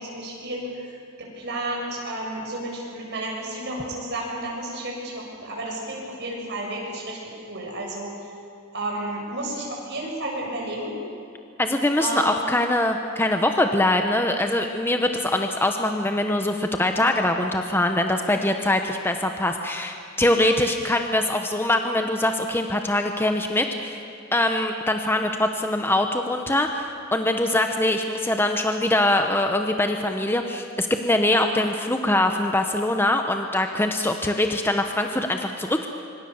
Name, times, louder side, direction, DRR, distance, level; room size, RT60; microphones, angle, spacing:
voice 1, 0.0-7.2 7.5-8.1 8.7-10.9 12.0-12.3 31.2-31.4, right 1 dB, 55° right, -2 dB, 7.4 m, -32 dB
voice 2, 11.6-24.0 24.3-35.9, left 1 dB, 10° left, 5 dB, 1.0 m, -23 dB
25.5 x 25.0 x 7.2 m, 2.4 s
head